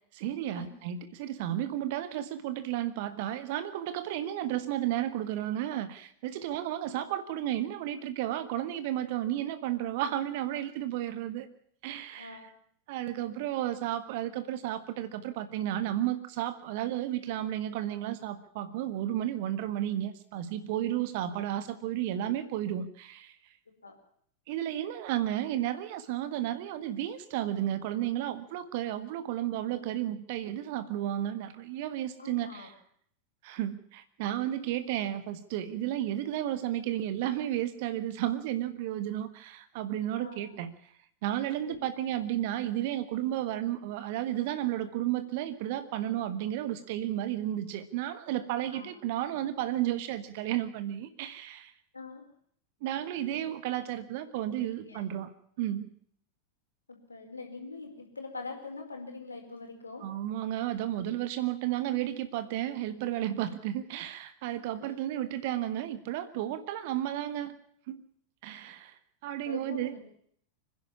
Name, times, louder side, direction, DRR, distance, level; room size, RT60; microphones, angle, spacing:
voice 1, 0.1-11.5 11.8-12.4 12.9-23.3 24.5-32.7 33.4-40.7 41.2-51.7 52.8-55.3 55.6-55.9 60.0-67.6 67.9-68.0 68.4-69.9, right 12 dB, 50° right, 12 dB, 1.5 m, -33 dB
voice 2, 12.2-12.5 23.8-23.9 32.2-32.7 40.1-40.4 41.7-41.8 48.7-48.9 51.9-52.2 53.3-53.5 54.6-55.0 56.9-60.0 69.4-70.0, left 3 dB, 80° left, 3 dB, 4.6 m, -43 dB
26.0 x 10.5 x 9.8 m, 0.64 s
figure-of-eight pair, 90°, 0 cm